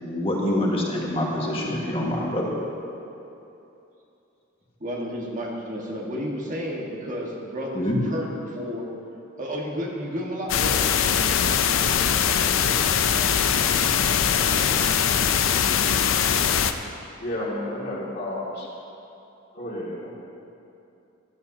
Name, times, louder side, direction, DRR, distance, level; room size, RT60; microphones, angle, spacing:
voice 1, 0.0-2.6 7.8-8.0, left 1 dB, 30° left, -3 dB, 1.7 m, -25 dB
voice 2, 4.8-8.9 9.4-10.9, equal, 40° right, -2 dB, 1.5 m, -31 dB
sound 1, 10.5-16.7, left 8 dB, 75° left, 0.5 m, -21 dB
voice 3, 17.2-18.7 19.5-20.1, left 1 dB, 55° left, -6 dB, 2.4 m, -31 dB
15.0 x 12.0 x 2.8 m, 2.8 s
head